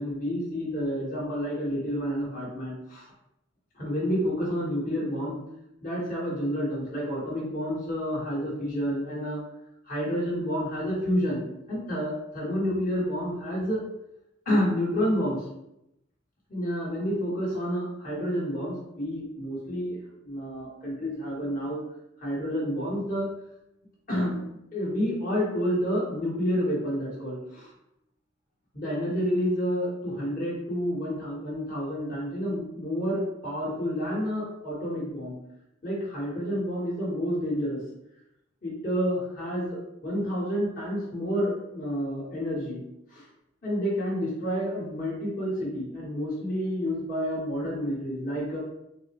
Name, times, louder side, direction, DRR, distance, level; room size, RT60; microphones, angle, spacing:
voice 1, 0.0-3.1 3.7-5.4 5.8-9.4 9.8-13.8 14.4-15.4 16.5-20.0 20.2-21.8 22.2-23.3 24.1-27.7 28.7-35.4 35.8-37.8 38.6-42.8 43.1-43.2 43.6-48.6, equal, 45° left, -6 dB, 1.4 m, -29 dB
4.0 x 2.0 x 3.0 m, 0.84 s
head